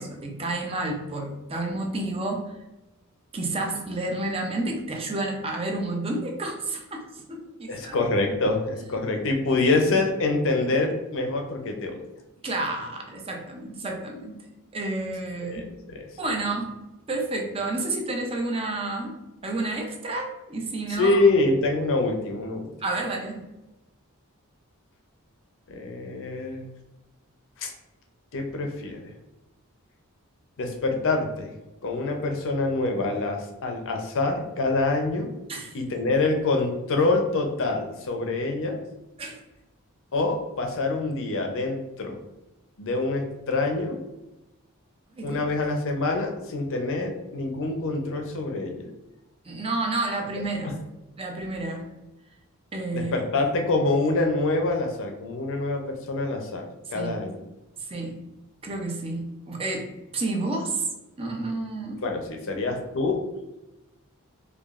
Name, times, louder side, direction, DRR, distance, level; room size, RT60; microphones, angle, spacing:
voice 1, 0.0-2.5 3.3-8.0 12.4-14.4 14.7-15.7 16.2-16.7 17.1-19.1 19.4-21.2 22.8-23.4 35.5-35.8 39.2-39.4 45.2-45.4 49.4-50.8 51.2-51.9 52.7-53.2 56.9-57.2 57.8-58.2 58.6-59.9 60.1-60.8 61.2-62.0, right 2 dB, 25° right, 2 dB, 0.5 m, -30 dB
voice 2, 7.7-12.0 15.4-16.1 21.0-22.7 25.7-26.7 27.6-27.7 28.3-29.1 30.6-31.5 31.8-35.3 35.7-38.8 40.1-42.2 42.8-44.0 45.2-48.8 52.9-56.6 56.9-57.4 62.0-63.2, left 2 dB, 60° left, 3 dB, 0.6 m, -26 dB
4.7 x 2.3 x 2.4 m, 1.0 s
head